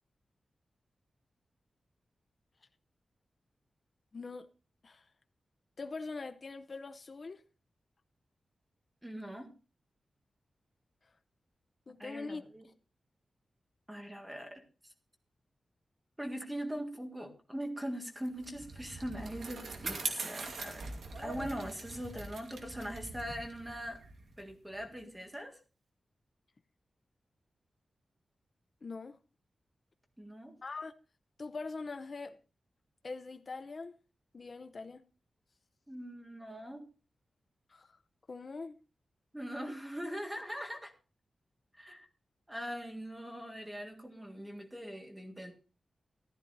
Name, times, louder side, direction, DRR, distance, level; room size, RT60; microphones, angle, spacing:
voice 1, 4.1-4.5 4.8-5.1 5.8-7.4 11.9-12.4 28.8-29.2 30.6-30.9 31.4-32.4 33.0-33.9 34.3-35.0 37.7-38.0 38.3-38.8, left 3 dB, 40° left, 0.6 m, -42 dB
voice 2, 9.0-9.5 12.0-12.7 13.9-14.6 16.2-24.0 24.4-25.6 30.2-30.6 35.9-36.9 39.3-40.9 41.7-42.1 42.5-45.5, equal, 5° right, 1.7 m, -41 dB
Bicycle, 18.2-25.0, right 3 dB, 80° right, 2.4 m, -42 dB
14.5 x 13.5 x 2.6 m
wide cardioid pair, 175°, 0 cm